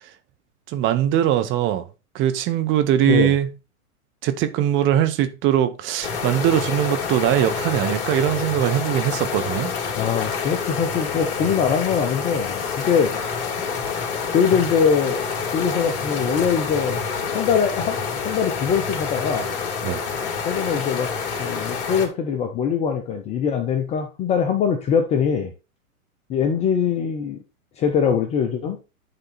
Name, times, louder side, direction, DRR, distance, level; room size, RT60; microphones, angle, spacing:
voice 1, 0.7-1.8 2.1-3.5 4.2-9.7 19.8-20.0, right 11 dB, 25° right, 0.8 m, -21 dB
sound 1, 6.0-22.1, left 6 dB, 50° left, 2.7 m, -27 dB
voice 2, 10.0-13.1 14.3-15.2 15.5-17.0 17.3-19.5 20.5-21.1 21.4-25.5 26.3-27.4 27.8-28.8, left 7 dB, 15° left, 0.5 m, -22 dB
10.0 x 3.6 x 4.1 m
hypercardioid pair, 125°, 44 cm